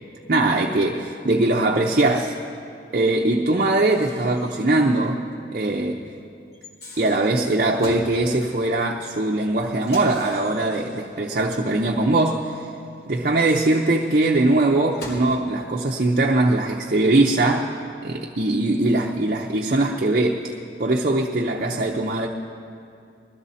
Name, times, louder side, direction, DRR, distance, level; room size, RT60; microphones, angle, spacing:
voice 1, 0.3-2.4 2.9-5.2 5.5-6.0 7.0-12.7 13.1-17.7 18.0-20.5 20.8-22.3, right 2 dB, 50° right, 0 dB, 0.7 m, -21 dB
Microwave oven, 1.8-2.3 3.7-5.0 5.3-5.4 6.5-8.1 9.8-11.2 13.2-15.4, left 1 dB, 60° left, 3.0 m, -43 dB
21.0 x 13.5 x 4.2 m, 2.5 s
head